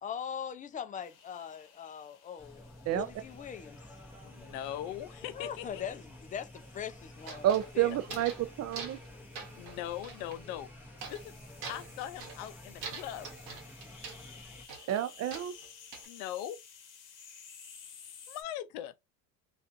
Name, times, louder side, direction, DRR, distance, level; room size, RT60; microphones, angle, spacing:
voice 1, 0.0-2.6 2.9-3.8 5.3-7.5 7.8-7.9, left 8 dB, 20° left, 0.4 m, -41 dB
sound 1, 1.0-18.4, left 7 dB, 50° left, 0.9 m, -56 dB
sound 2, 2.4-14.7, left 1 dB, 5° right, 0.8 m, -51 dB
voice 2, 4.2-5.8 9.6-10.7 11.1-11.4 11.7-13.3 16.1-16.6 18.3-18.9, left 11 dB, 80° left, 0.6 m, -40 dB
sound 3, 7.2-8.5 8.7-9.1 9.3-10.4 11.0-11.3 11.6-12.4 12.8-14.2 14.7-16.1, right 5 dB, 65° right, 1.1 m, -44 dB
voice 3, 7.4-9.0 14.9-15.6, right 12 dB, 40° right, 0.5 m, -30 dB
2.5 x 2.4 x 2.5 m
supercardioid pair, 80°, 40 cm